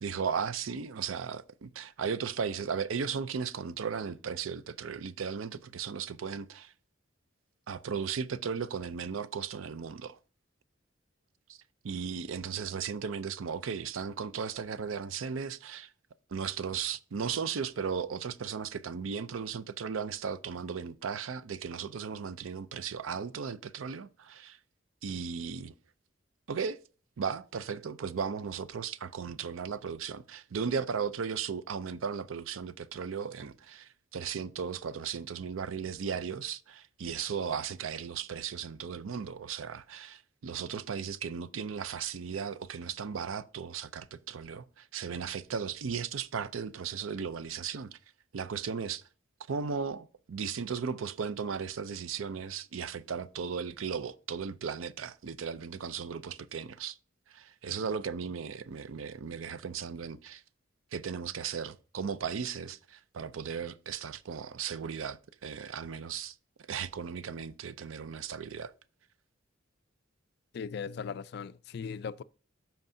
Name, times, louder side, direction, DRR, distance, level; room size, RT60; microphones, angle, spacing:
voice 1, 0.0-6.7 7.7-10.2 11.5-11.6 11.8-15.9 16.3-24.6 25.0-25.7 26.5-26.8 27.2-48.0 48.3-49.0 49.5-57.0 57.3-60.4 60.9-66.4 66.7-68.7, right 6 dB, 85° right, 0.5 m, -36 dB
voice 2, 70.5-72.2, left 6 dB, 55° left, 0.3 m, -38 dB
13.0 x 4.5 x 2.7 m
head